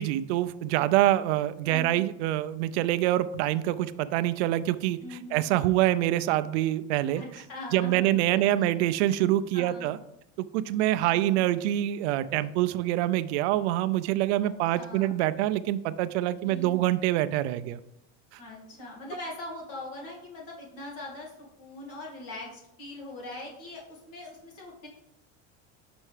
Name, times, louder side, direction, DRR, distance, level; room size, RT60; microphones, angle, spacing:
voice 1, 0.0-7.2 7.7-10.0 10.4-17.8 18.3-18.4, right 14 dB, 85° right, 14 dB, 0.5 m, -26 dB
voice 2, 1.7-2.0 5.0-5.5 7.2-8.7 9.5-9.9 11.0-11.4 14.4-15.2 16.4-16.8 18.4-21.3 21.6-24.9, left 1 dB, 45° left, -2 dB, 2.0 m, -42 dB
6.1 x 5.5 x 3.2 m, 0.81 s
cardioid pair, 155°, 33 cm